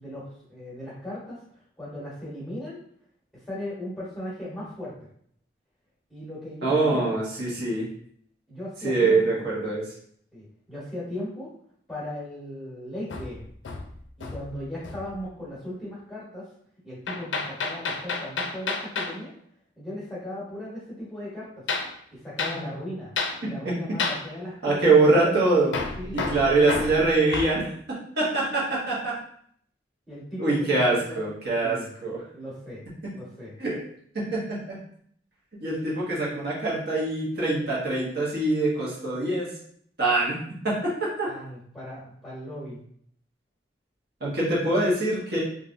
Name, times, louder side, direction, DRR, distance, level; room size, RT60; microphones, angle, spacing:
voice 1, 0.0-2.8 3.3-4.9 6.1-7.1 8.5-9.4 10.3-11.5 11.9-13.5 14.2-16.5 16.8-19.3 19.8-21.7 22.1-23.1 23.4-25.0 25.2-25.4 26.0-27.1 30.1-31.3 31.6-31.9 32.3-32.8 33.1-33.5 41.3-42.8, left 1 dB, ahead, -8 dB, 1.1 m, -37 dB
voice 2, 6.6-7.8 8.8-9.8 24.6-25.7 26.1-29.2 30.4-32.2 33.6-33.8 34.1-34.8 35.6-39.5 40.0-40.4 40.6-41.3 44.2-45.4, right 3 dB, 60° right, -5 dB, 1.0 m, -24 dB
Hammer, 13.1-14.6 14.8-15.2 17.1-19.2 21.7-21.9 22.4-22.6 23.2-23.4 24.0-24.3 25.7-27.6, left 4 dB, 75° left, 0.4 m, -30 dB
3.1 x 2.5 x 2.5 m, 0.65 s
head